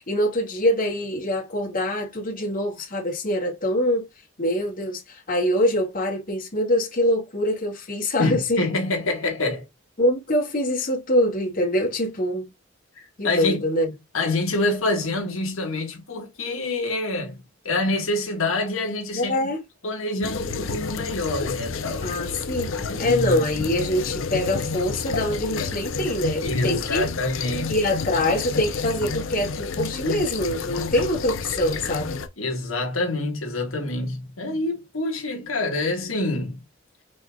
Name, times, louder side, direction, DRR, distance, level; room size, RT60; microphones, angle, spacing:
voice 1, 0.0-4.1 4.4-8.6 10.0-12.5 13.2-13.9 19.1-19.6 22.0-22.7 23.0-27.0 27.7-32.2, left 1 dB, 45° left, 2.0 m, -24 dB
voice 2, 8.2-9.7 13.0-13.6 14.1-19.4 19.8-22.1 22.7-23.7 26.4-27.8 32.4-36.6, left 2 dB, 90° left, 1.6 m, -26 dB
sound 1, 20.2-32.3, left 4 dB, 70° left, 0.7 m, -30 dB
5.1 x 4.1 x 2.3 m
head